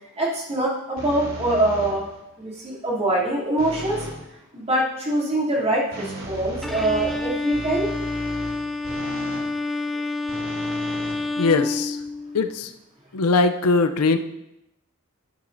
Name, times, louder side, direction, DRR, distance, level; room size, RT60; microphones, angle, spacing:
voice 1, 0.2-2.1 2.4-4.0 4.5-7.9, right 1 dB, 30° right, -6 dB, 2.9 m, -24 dB
sound 1, 1.0-2.2 3.6-4.2 5.9-9.5 10.3-11.8, equal, 65° right, 3.0 m, -36 dB
Bowed string instrument, 6.6-12.5, left 2 dB, ahead, 0.5 m, -28 dB
voice 2, 11.4-12.0 12.3-12.7 13.1-14.2, left 3 dB, 85° left, 9 dB, 0.6 m, -20 dB
11.5 x 9.8 x 2.7 m, 0.90 s
head